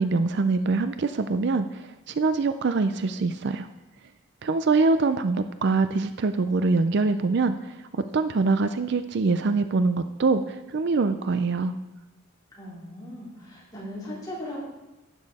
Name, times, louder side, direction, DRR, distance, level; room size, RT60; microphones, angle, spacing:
voice 1, 0.0-3.7 4.4-7.8 8.1-11.7, right 3 dB, 55° right, 10 dB, 0.4 m, -24 dB
voice 2, 12.5-14.7, left 1 dB, 20° left, -7 dB, 3.6 m, -38 dB
11.5 x 8.5 x 4.1 m, 1.0 s
head